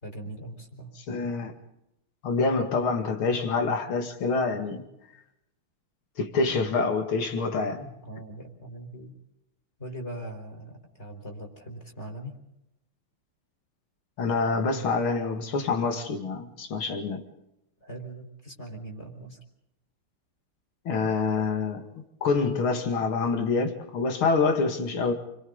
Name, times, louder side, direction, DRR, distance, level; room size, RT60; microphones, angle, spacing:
voice 1, 0.0-0.9 8.0-9.1 9.8-12.3 17.8-19.4, right 1 dB, 30° left, 3 dB, 4.4 m, -40 dB
voice 2, 1.1-1.5 2.2-4.8 6.2-7.9 14.2-17.2 20.8-21.8 22.2-25.1, left 4 dB, 75° left, 5 dB, 2.9 m, -26 dB
29.5 x 23.0 x 4.0 m, 0.85 s
omnidirectional pair, 2.3 m